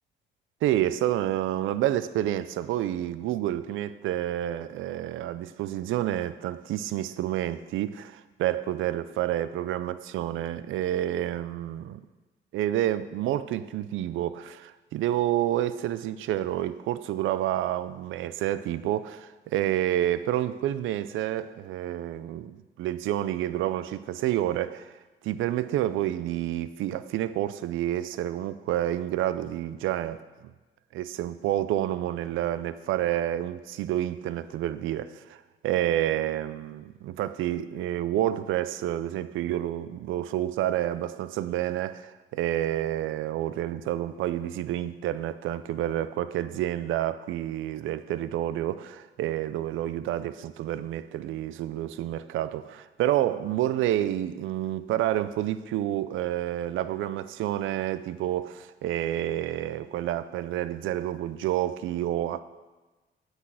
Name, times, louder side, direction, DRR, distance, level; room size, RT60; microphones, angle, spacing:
voice 1, 0.6-12.0 12.5-24.9 25.2-30.5 30.9-62.4, right 13 dB, 85° right, 0.5 m, -29 dB
8.0 x 6.1 x 7.5 m
cardioid pair, 90°, 20 cm